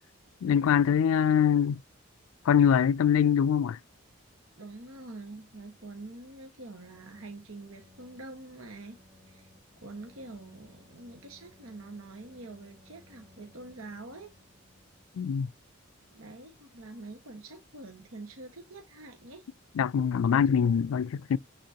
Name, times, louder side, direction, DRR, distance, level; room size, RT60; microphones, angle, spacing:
voice 1, 0.4-1.8 2.5-3.8 15.2-15.5 19.8-21.4, left 8 dB, 75° left, 0.3 m, -23 dB
voice 2, 4.6-9.0 9.3-9.5 9.8-14.3 16.1-19.5, right 2 dB, 80° right, 1.5 m, -45 dB
sound 1, 6.8-15.4, left 2 dB, 5° right, 1.8 m, -61 dB
9.1 x 4.2 x 2.8 m
head